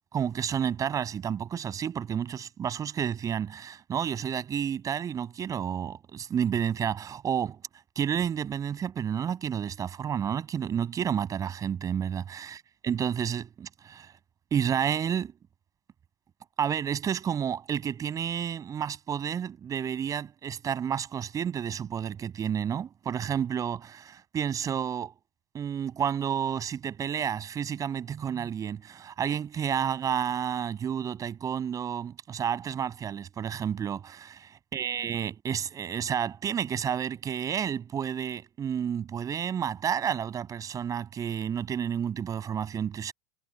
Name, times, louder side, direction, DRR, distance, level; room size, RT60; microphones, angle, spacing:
voice 1, 0.1-7.6 8.0-14.1 14.5-15.3 16.6-25.1 25.5-43.1, right 8 dB, 25° right, 7.6 m, -30 dB
figure-of-eight pair, 90°, 13 cm